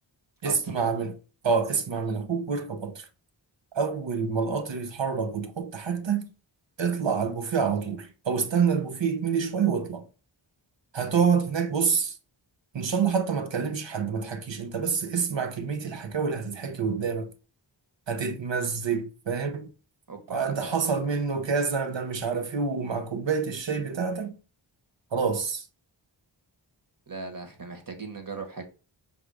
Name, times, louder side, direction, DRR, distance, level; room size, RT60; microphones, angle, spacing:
voice 1, 0.4-1.1 1.4-3.1 3.7-6.3 6.8-10.0 10.9-12.1 12.7-17.3 18.1-19.7 20.3-24.4 25.1-25.6, right 6 dB, 65° right, 0.9 m, -27 dB
voice 2, 20.1-20.8 27.1-28.7, right 4 dB, 45° right, 1.4 m, -38 dB
5.3 x 3.7 x 4.8 m
wide cardioid pair, 95°, 48 cm